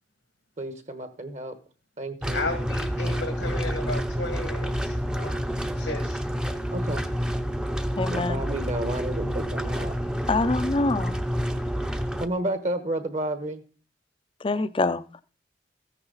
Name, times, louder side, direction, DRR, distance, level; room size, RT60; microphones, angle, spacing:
voice 1, 0.6-1.6 2.0-2.4 6.7-7.1 8.1-10.2 12.2-13.6, right 1 dB, 40° right, 1.3 m, -31 dB
sound 1, 2.2-12.3, equal, 5° right, 0.7 m, -28 dB
voice 2, 2.3-5.4 5.8-6.2, left 2 dB, 85° left, 1.9 m, -34 dB
voice 3, 8.0-8.4 10.3-11.2 14.4-15.2, left 3 dB, 30° left, 0.6 m, -25 dB
14.0 x 9.8 x 4.0 m
head